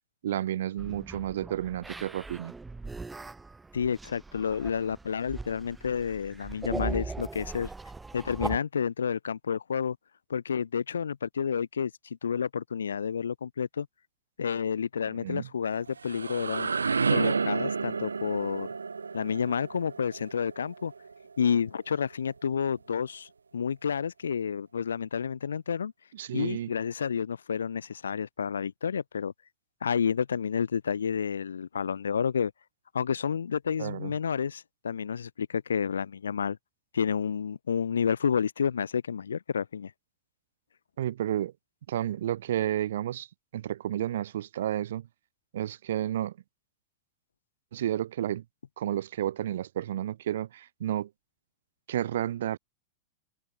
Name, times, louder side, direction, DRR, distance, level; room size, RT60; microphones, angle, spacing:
voice 1, 0.2-2.5 15.2-15.5 26.1-26.7 33.8-34.1 41.0-41.5 41.9-43.3 43.5-45.1 45.5-46.3 47.7-48.4 48.8-51.1 51.9-52.6, right 11 dB, 70° right, 3.9 m, -31 dB
sound 1, 0.8-8.6, right 3 dB, 10° right, 2.4 m, -39 dB
voice 2, 3.7-7.7 8.1-10.0 10.3-13.9 14.4-16.7 17.1-18.7 19.1-20.9 21.4-25.9 26.3-29.3 29.8-32.5 32.9-36.6 36.9-39.9, left 7 dB, 80° left, 1.1 m, -30 dB
sound 2, 15.7-21.5, right 5 dB, 85° right, 1.2 m, -31 dB
figure-of-eight pair, 95°, 0 cm